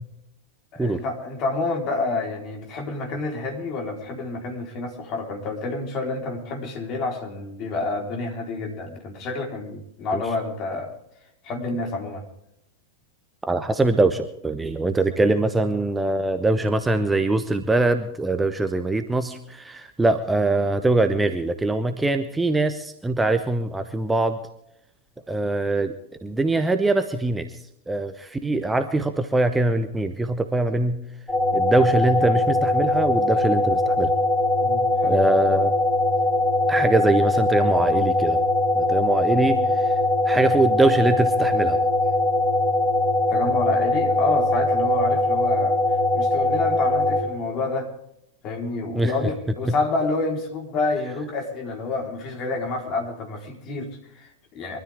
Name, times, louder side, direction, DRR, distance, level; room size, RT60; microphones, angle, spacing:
voice 1, 0.7-10.9 11.4-12.3 34.6-35.2 43.3-45.8 46.1-47.9 48.4-54.8, left 3 dB, 35° left, 2 dB, 4.0 m, -28 dB
voice 2, 13.5-24.4 25.3-25.9 26.2-27.5 27.9-31.0 31.5-34.1 35.0-35.8 36.7-38.4 38.7-39.9 40.3-41.8 48.9-49.1, right 2 dB, 10° right, 8 dB, 0.9 m, -22 dB
sound 1, 31.3-47.2, left 2 dB, 15° left, 7.3 m, -21 dB
23.5 x 13.0 x 3.5 m, 0.78 s
figure-of-eight pair, 90°, 0 cm